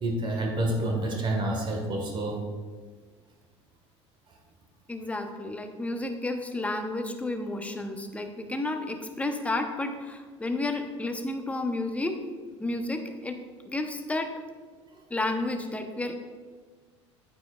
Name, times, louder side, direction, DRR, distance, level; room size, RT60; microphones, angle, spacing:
voice 1, 0.0-2.4, right 1 dB, 30° right, 1 dB, 1.6 m, -28 dB
voice 2, 4.9-12.2 12.6-13.4 13.7-14.3 15.1-16.2, left 2 dB, 10° left, 5 dB, 0.9 m, -31 dB
14.0 x 5.0 x 2.4 m, 1.5 s
figure-of-eight pair, 70°, 15 cm